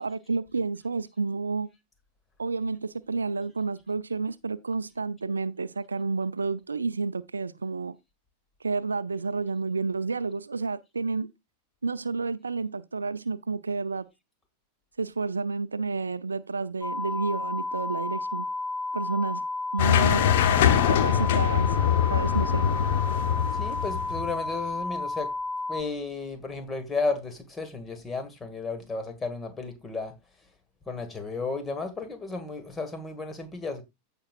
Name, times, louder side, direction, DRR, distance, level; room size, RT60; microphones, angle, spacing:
voice 1, 0.0-1.7 2.4-8.0 8.6-11.3 11.8-14.1 15.0-18.5 18.9-19.5 19.7-20.3 20.9-22.6, right 4 dB, 75° right, 0.5 m, -30 dB
sound 1, 16.8-25.8, left 2 dB, ahead, 2.7 m, -32 dB
sound 2, 19.8-24.5, left 9 dB, 55° left, 0.9 m, -23 dB
voice 2, 23.5-25.3 25.7-30.1 30.9-33.8, left 3 dB, 15° left, 1.8 m, -33 dB
15.0 x 5.4 x 2.5 m
figure-of-eight pair, 90°, 0 cm